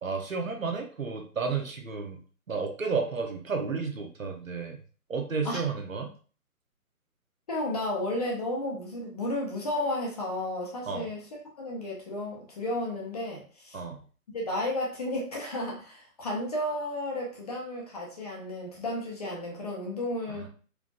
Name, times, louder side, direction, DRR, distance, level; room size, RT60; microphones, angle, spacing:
voice 1, 0.0-2.2 2.5-4.8 5.1-6.1 10.9-11.1 13.7-14.0, right 5 dB, 60° right, 3 dB, 1.1 m, -32 dB
voice 2, 7.5-11.3 11.6-13.8 14.3-20.5, left 1 dB, 25° left, -2 dB, 1.0 m, -33 dB
4.7 x 3.7 x 2.6 m, 0.39 s
figure-of-eight pair, 145°, 45 cm